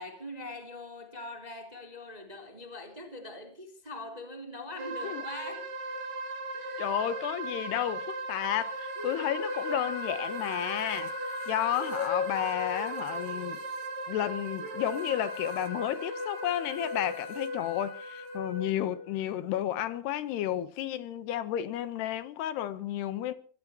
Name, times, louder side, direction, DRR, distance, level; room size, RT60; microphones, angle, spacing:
voice 1, 0.0-5.7 6.5-6.9, left 2 dB, 10° right, 2.2 m, -42 dB
sound 1, 4.8-18.4, right 3 dB, 60° right, 4.7 m, -38 dB
voice 2, 6.8-11.1 11.5-13.6 14.1-23.3, left 11 dB, 70° left, 3.0 m, -32 dB
sound 2, 9.0-19.4, left 4 dB, 40° left, 8.1 m, -38 dB
24.0 x 16.5 x 3.1 m
omnidirectional pair, 5.3 m